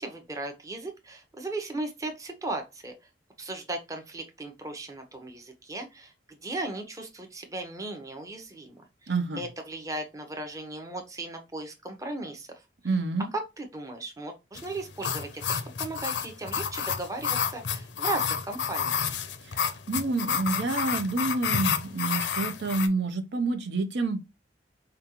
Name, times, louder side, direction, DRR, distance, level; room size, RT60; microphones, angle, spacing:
voice 1, 0.0-2.9 3.4-12.6 13.3-19.0, right 2 dB, 20° right, 0.8 m, -37 dB
voice 2, 9.1-9.5 12.8-13.3 19.4-24.2, right 3 dB, 75° right, 0.6 m, -28 dB
sound 1, 14.5-22.9, left 7 dB, 85° left, 0.6 m, -30 dB
5.2 x 2.3 x 2.8 m
head